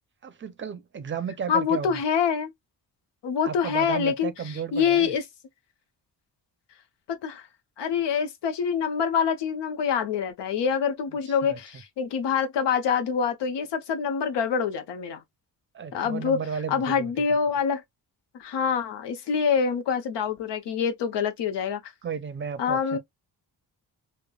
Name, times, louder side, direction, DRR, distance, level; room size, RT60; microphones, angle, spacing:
voice 1, 0.2-2.0 3.4-5.1 11.3-11.6 15.7-17.1 22.0-23.0, right 7 dB, 30° right, 0.5 m, -34 dB
voice 2, 1.5-2.5 3.2-4.3 4.7-5.2 7.1-7.5 7.8-15.2 15.9-16.4 16.7-17.8 18.3-21.9 22.6-23.0, left 7 dB, 85° left, 0.8 m, -25 dB
5.1 x 2.1 x 2.3 m
cardioid pair, 120°, 41 cm